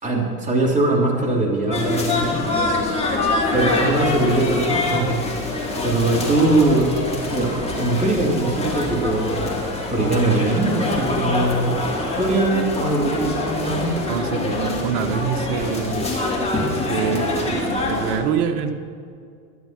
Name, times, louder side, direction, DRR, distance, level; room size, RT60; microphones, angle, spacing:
voice 1, 0.0-2.4 3.5-5.2 5.8-6.9 7.3-9.4 9.9-11.8 12.2-13.9, right 2 dB, 15° right, -2 dB, 3.3 m, -21 dB
sound 1, 1.7-18.2, left 2 dB, 10° left, 2.9 m, -25 dB
voice 2, 14.1-16.0 16.9-18.7, right 7 dB, 55° right, 6 dB, 1.4 m, -25 dB
12.5 x 10.5 x 6.0 m, 2.1 s
hypercardioid pair, 100°, 49 cm